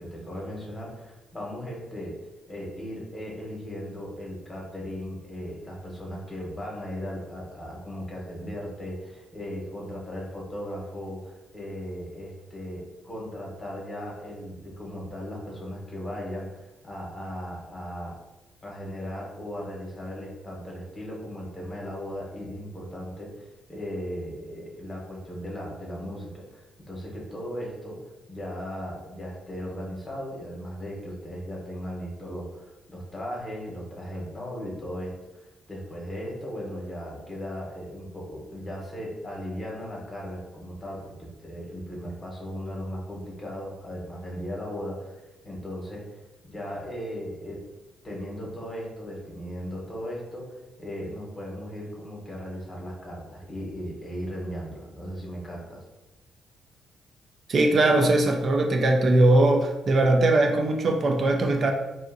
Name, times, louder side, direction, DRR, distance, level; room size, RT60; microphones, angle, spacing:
voice 1, 0.0-2.2 2.5-18.2 18.6-28.0 28.3-45.2 45.4-46.0 46.4-47.6 48.0-55.8, equal, 25° left, -3 dB, 0.9 m, -37 dB
voice 2, 57.5-61.7, right 2 dB, 50° right, 2 dB, 0.3 m, -20 dB
2.6 x 2.4 x 2.6 m, 1.0 s
cardioid pair, 90°, 0 cm